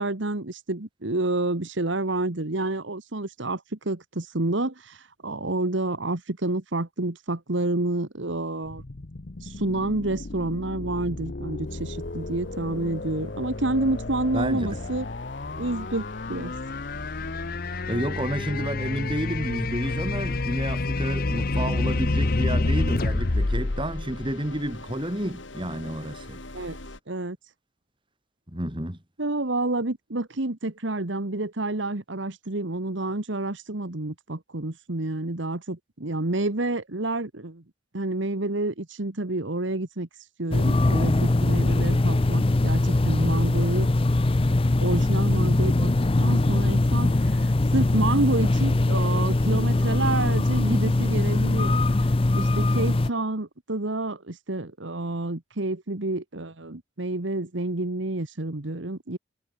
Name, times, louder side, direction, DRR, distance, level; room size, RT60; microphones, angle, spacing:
voice 1, 0.0-8.8 9.4-15.1 15.6-16.0 16.3-16.5 26.5-26.8 27.1-27.4 29.2-37.6 37.9-40.1 40.4-43.9 44.8-45.9 46.2-59.2, right 2 dB, 70° right, 1.6 m, -29 dB
sound 1, 8.7-24.9, left 2 dB, 50° left, 0.9 m, -29 dB
sound 2, 11.6-27.0, left 2 dB, 70° left, 4.0 m, -44 dB
voice 2, 14.3-14.8 17.7-26.4 28.5-29.0, right 1 dB, 25° right, 5.1 m, -31 dB
sound 3, 40.5-53.1, left 2 dB, 30° left, 0.6 m, -22 dB
head